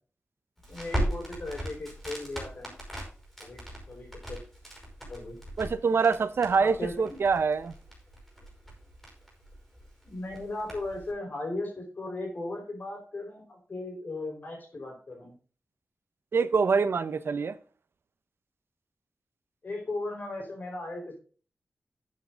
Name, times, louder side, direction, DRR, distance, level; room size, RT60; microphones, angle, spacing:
Crackle, 0.6-11.1, equal, 5° left, 5.9 m, -39 dB
voice 1, 0.7-2.7 3.4-3.6 3.9-4.4 5.1-5.4 6.6-7.2 10.0-15.3 19.6-21.2, left 2 dB, 40° left, 4.6 m, -37 dB
voice 2, 5.6-7.7 16.3-17.5, right 5 dB, 60° right, 0.8 m, -25 dB
12.0 x 7.4 x 3.8 m
wide cardioid pair, 175°, 4 cm